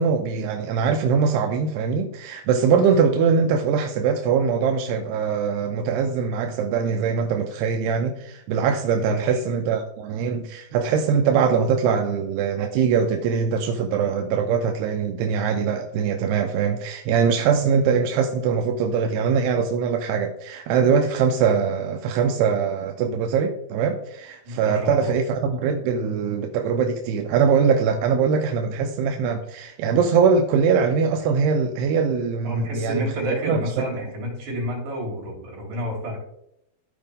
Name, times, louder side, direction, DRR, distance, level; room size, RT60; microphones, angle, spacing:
voice 1, 0.0-33.0 33.4-33.9, right 6 dB, 80° right, 3 dB, 2.5 m, -22 dB
voice 2, 9.0-9.4 24.4-25.1 32.4-36.2, equal, 55° right, -3 dB, 4.8 m, -29 dB
14.5 x 5.0 x 3.6 m, 0.77 s
omnidirectional pair, 5.1 m